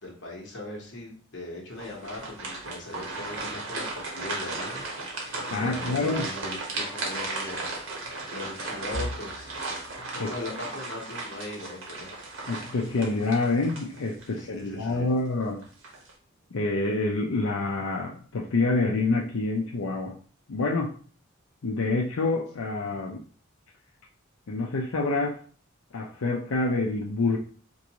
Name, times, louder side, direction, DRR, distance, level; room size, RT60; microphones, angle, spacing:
voice 1, 0.0-4.8 5.6-7.8 8.3-9.6 10.2-12.1 14.4-15.1, left 2 dB, 55° left, -1 dB, 1.2 m, -39 dB
sound 1, 1.7-14.4 14.9-15.0 15.6-16.1, right 3 dB, 80° right, 1.2 m, -35 dB
voice 2, 5.5-6.3 10.1-10.3 12.5-15.6 16.5-20.1 20.5-20.9 21.6-23.2 24.5-25.4 25.9-27.4, left 3 dB, 85° left, -2 dB, 0.5 m, -27 dB
sound 2, 8.9-20.7 21.2-21.4 21.8-22.0 22.8-23.3, equal, ahead, 0.8 m, -47 dB
4.5 x 2.6 x 2.9 m, 0.43 s
head